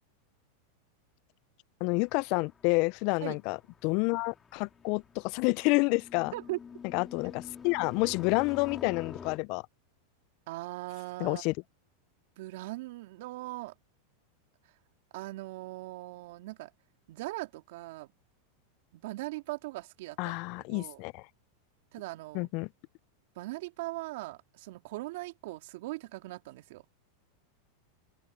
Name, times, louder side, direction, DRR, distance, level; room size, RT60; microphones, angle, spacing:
voice 1, 1.8-6.3 6.9-9.6 11.2-11.5 20.2-21.2 22.3-22.7, left 28 dB, 55° left, 0.5 m, -29 dB
sound 1, 1.9-9.4, left 6 dB, 25° left, 4.5 m, -48 dB
voice 2, 10.5-11.4 12.4-13.7 15.1-16.7 17.1-18.1 18.9-20.4 20.7-21.0 21.9-22.5 23.4-26.8, right 19 dB, 65° right, 2.5 m, -40 dB
open air
hypercardioid pair, 100°, 0 cm